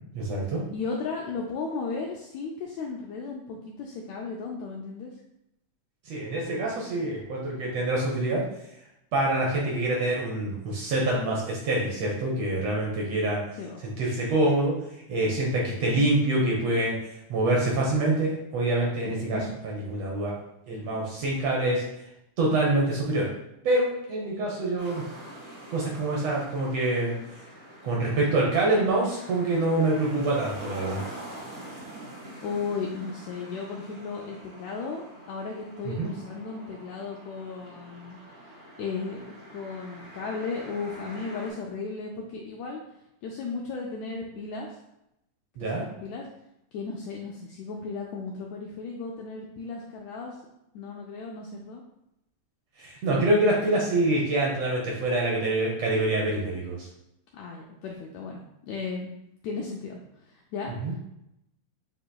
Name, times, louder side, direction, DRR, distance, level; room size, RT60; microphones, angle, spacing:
voice 1, 0.1-0.6 6.1-8.4 9.1-13.4 14.0-14.8 15.1-17.0 17.3-19.4 19.6-20.3 20.7-21.8 22.4-23.3 23.6-25.0 25.7-27.1 27.8-31.0 35.8-36.1 45.6-45.8 52.8-56.9 60.8-60.9, right 2 dB, 70° right, -3 dB, 1.6 m, -25 dB
voice 2, 0.7-5.1 13.5-13.8 19.0-19.4 32.4-38.5 38.8-39.2 39.5-42.8 43.2-44.8 45.6-46.3 46.7-50.3 50.7-51.8 57.3-61.0, left 4 dB, 85° left, -1 dB, 1.5 m, -35 dB
sound 1, 24.8-41.5, right 1 dB, 30° right, 1.5 m, -45 dB
7.7 x 2.8 x 2.2 m, 0.84 s
omnidirectional pair, 3.6 m